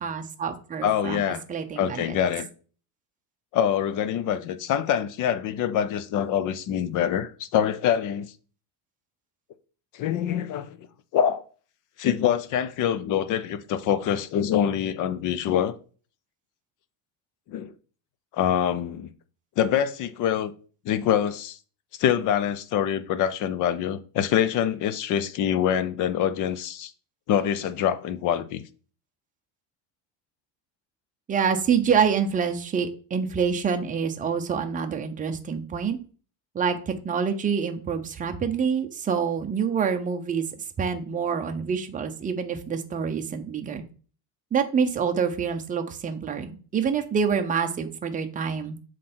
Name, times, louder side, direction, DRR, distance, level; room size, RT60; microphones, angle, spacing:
voice 1, 0.0-1.2 1.5-2.2 31.3-36.0 36.5-40.4 40.8-43.8 44.5-48.8, right 6 dB, 20° right, 0.6 m, -26 dB
voice 2, 0.8-1.4 1.8-2.5 3.5-8.3 9.9-10.9 11.1-11.4 12.0-15.8 17.5-17.7 18.3-19.1 19.6-20.5 20.8-21.6 22.0-26.9 27.3-28.6, left 9 dB, 45° left, 0.6 m, -25 dB
7.4 x 3.3 x 4.3 m
cardioid pair, 155°, 42 cm